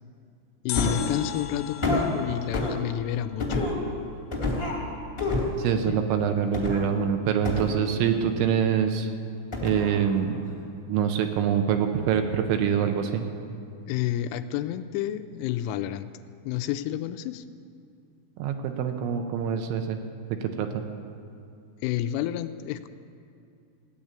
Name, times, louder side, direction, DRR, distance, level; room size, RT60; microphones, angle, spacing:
voice 1, 0.6-3.6 5.9-6.0 13.9-16.1 16.5-17.4 21.8-22.9, left 12 dB, 85° left, 10 dB, 3.1 m, -30 dB
sound 1, 0.7-3.8 4.0-4.1, left 11 dB, 70° left, 2.8 m, -38 dB
sound 2, 0.7-1.1 1.8-2.1 2.5-2.8 3.4-3.8 4.3-4.8 5.2-5.6 6.5-6.9 7.4-8.2 9.5-10.0 10.4-10.5, left 2 dB, 30° left, 1.1 m, -28 dB
voice 2, 5.6-9.1 9.6-10.4 10.9-13.3 18.4-20.0 20.4-20.8, right 8 dB, 75° right, 6 dB, 3.0 m, -25 dB
15.5 x 9.6 x 8.9 m, 2.5 s
omnidirectional pair, 5.7 m